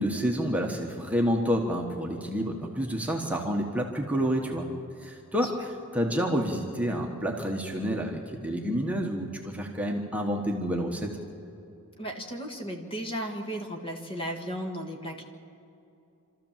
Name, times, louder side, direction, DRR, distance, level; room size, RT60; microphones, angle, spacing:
voice 1, 0.0-4.7 5.0-5.5 5.9-11.1, equal, 5° right, 0 dB, 1.4 m, -29 dB
voice 2, 12.0-15.2, equal, 25° left, 3 dB, 1.7 m, -35 dB
27.0 x 13.5 x 7.4 m, 2.7 s
head